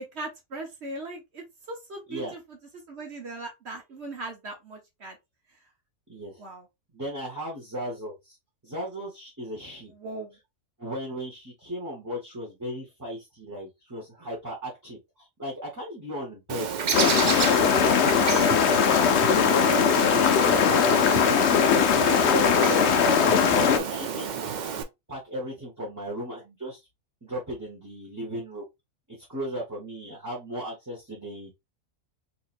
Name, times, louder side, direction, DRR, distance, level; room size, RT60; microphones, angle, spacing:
voice 1, 0.0-2.4 2.9-5.2 6.4-6.6 9.9-10.3 22.4-23.0, right 2 dB, 55° right, 1.2 m, -38 dB
voice 2, 6.1-6.4 6.9-8.4 8.6-9.9 10.8-16.7 17.5-21.0 21.9-24.5 25.1-26.8 27.2-28.6 29.3-31.5, equal, 15° right, 0.9 m, -36 dB
Bird, 16.5-24.8, right 7 dB, 70° right, 0.4 m, -31 dB
sound 1, 16.9-23.8, left 7 dB, 65° left, 0.8 m, -20 dB
4.2 x 2.9 x 2.4 m
omnidirectional pair, 1.4 m